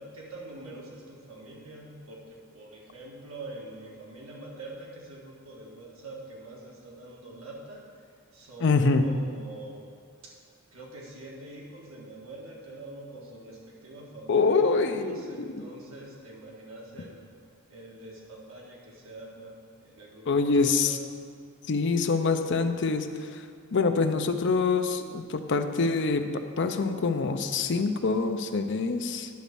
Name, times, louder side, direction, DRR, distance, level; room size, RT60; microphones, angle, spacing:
voice 1, 0.0-8.0 8.3-9.9 10.2-10.4 10.7-17.2 17.7-21.0, right 2 dB, 80° right, -3 dB, 1.8 m, -45 dB
voice 2, 8.6-9.0 14.3-15.2 15.5-15.6 20.3-21.0 21.7-23.4 23.7-29.3, left 4 dB, 60° left, 7 dB, 0.5 m, -25 dB
10.5 x 4.1 x 7.0 m, 2.1 s
head